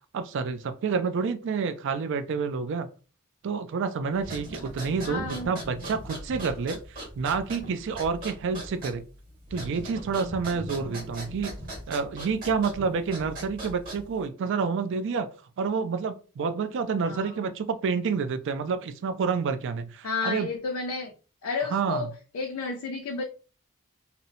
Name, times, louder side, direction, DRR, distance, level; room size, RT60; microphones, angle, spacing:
voice 1, 0.1-2.9 3.4-9.0 9.5-11.5 11.9-15.3 15.6-20.5 21.7-22.1, right 5 dB, 55° right, 0.3 m, -29 dB
sound 1, 4.2-14.2, right 1 dB, 40° right, 1.2 m, -39 dB
voice 2, 5.0-5.5 17.0-17.4 20.0-21.1 21.4-22.1 22.3-23.2, left 4 dB, 75° left, 0.4 m, -31 dB
2.7 x 2.0 x 2.7 m
head